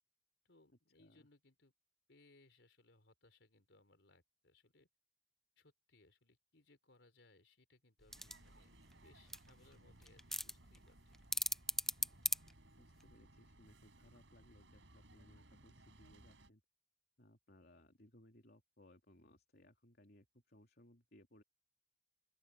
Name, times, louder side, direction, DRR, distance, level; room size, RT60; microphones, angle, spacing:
voice 1, 0.4-1.7 2.1-4.9 5.6-11.0 11.2-11.3, left 2 dB, 75° left, 3.8 m, -69 dB
sound 1, 8.0-13.2, left 1 dB, ahead, 0.6 m, -41 dB
sound 2, 8.1-16.5, right 1 dB, 90° right, 5.3 m, -63 dB
voice 2, 12.8-16.6 17.2-21.4, left 1 dB, 55° left, 3.4 m, -65 dB
open air
head